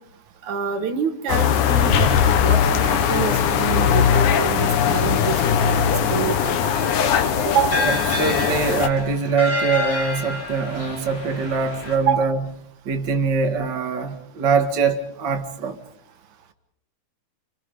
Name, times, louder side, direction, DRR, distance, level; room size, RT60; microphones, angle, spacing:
voice 1, 0.4-6.6 7.5-7.9 12.1-12.3, right 7 dB, 75° right, 2.8 m, -26 dB
sound 1, 1.3-8.9, left 8 dB, 85° left, 2.8 m, -19 dB
sound 2, 6.7-11.9, left 2 dB, 70° left, 9.4 m, -29 dB
voice 2, 7.8-12.4 12.8-15.8, right 5 dB, 40° right, 2.4 m, -23 dB
29.0 x 28.5 x 5.2 m
omnidirectional pair, 3.4 m